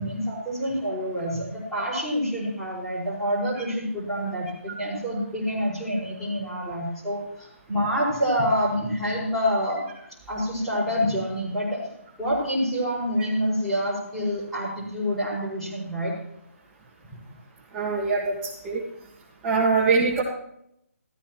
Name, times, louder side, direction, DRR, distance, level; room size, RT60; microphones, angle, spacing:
voice 1, 0.0-9.8 10.3-11.8 12.2-16.1, equal, 5° left, -9 dB, 5.8 m, -27 dB
voice 2, 17.7-18.8 19.4-20.2, right 4 dB, 15° right, -5 dB, 1.8 m, -23 dB
15.0 x 15.0 x 3.1 m, 0.75 s
figure-of-eight pair, 155°, 8 cm